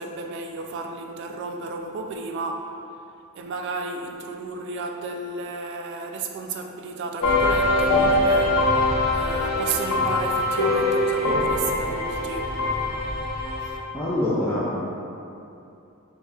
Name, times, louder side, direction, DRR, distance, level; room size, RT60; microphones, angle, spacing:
voice 1, 0.0-2.7 3.4-12.6 13.6-13.8, right 3 dB, 60° right, 4 dB, 0.3 m, -33 dB
sound 1, 7.2-13.8, left 2 dB, 85° left, 0.7 m, -22 dB
voice 2, 13.9-14.9, left 1 dB, 10° left, -12 dB, 0.5 m, -25 dB
5.2 x 2.8 x 2.3 m, 2.7 s
head